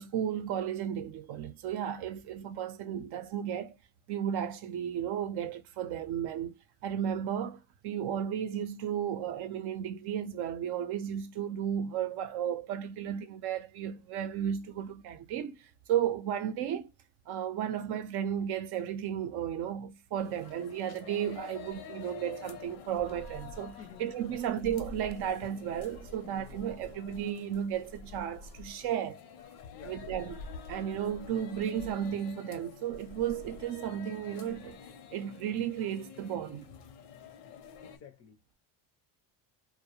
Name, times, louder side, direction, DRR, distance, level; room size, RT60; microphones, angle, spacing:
voice 1, 0.0-3.8 4.1-16.9 17.3-29.2 29.8-30.4 30.7-34.8 35.1-36.7, right 9 dB, 60° right, 0.5 m, -34 dB
sound 1, 20.1-38.0, left 5 dB, 85° left, 0.7 m, -48 dB
voice 2, 23.8-24.4 26.2-26.6 29.7-30.1 37.8-38.4, left 7 dB, 35° left, 0.4 m, -52 dB
2.3 x 2.1 x 2.7 m
supercardioid pair, 105°, 45 cm